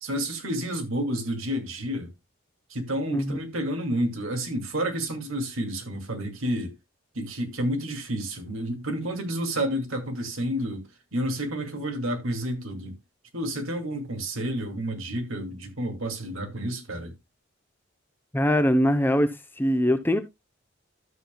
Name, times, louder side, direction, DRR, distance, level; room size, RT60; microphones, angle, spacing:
voice 1, 0.0-2.1 2.7-6.7 7.1-12.9 13.3-17.1, right 1 dB, 90° right, 2.5 m, -30 dB
voice 2, 3.1-3.4 18.3-19.3 19.6-20.2, equal, 10° left, 0.7 m, -22 dB
12.5 x 7.4 x 2.3 m
head